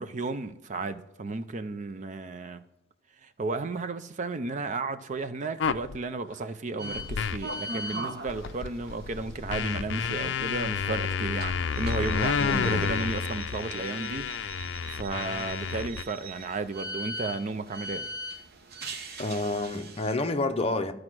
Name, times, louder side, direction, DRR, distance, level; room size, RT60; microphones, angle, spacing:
voice 1, 0.0-2.6 3.2-14.3 14.9-18.1, right 3 dB, 40° right, 0.5 m, -34 dB
sound 1, 5.6-6.0 6.9-7.5 7.9-8.0 8.3-16.0, left 6 dB, 65° left, 0.4 m, -30 dB
sound 2, 6.8-20.1, right 1 dB, 55° right, 0.9 m, -41 dB
voice 2, 12.4-12.9 19.2-20.9, left 2 dB, 30° left, 0.7 m, -29 dB
13.5 x 4.9 x 6.1 m
head